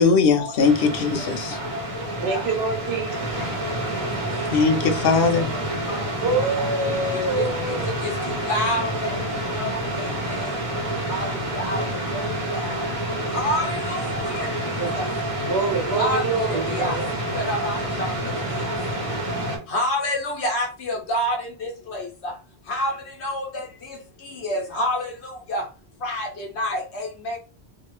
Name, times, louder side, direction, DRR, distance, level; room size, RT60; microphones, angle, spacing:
voice 1, 0.0-1.6 4.5-5.5, left 5 dB, 65° left, 0.8 m, -19 dB
sound 1, 0.6-19.6, right 1 dB, 35° right, 1.1 m, -28 dB
voice 2, 2.2-3.4 6.2-8.3 14.8-17.1, right 3 dB, 70° right, 1.2 m, -26 dB
voice 3, 8.5-8.9 9.6-9.7 11.1-11.2 11.7-11.8 13.3-13.7 16.0-16.2 16.8-16.9 17.5-17.7 19.7-21.3 22.7-22.9 23.2-23.4 24.4-25.0 25.5-25.6 26.0-26.3 26.6-26.8, equal, 90° left, 1.2 m, -24 dB
2.8 x 2.5 x 3.1 m
omnidirectional pair, 1.1 m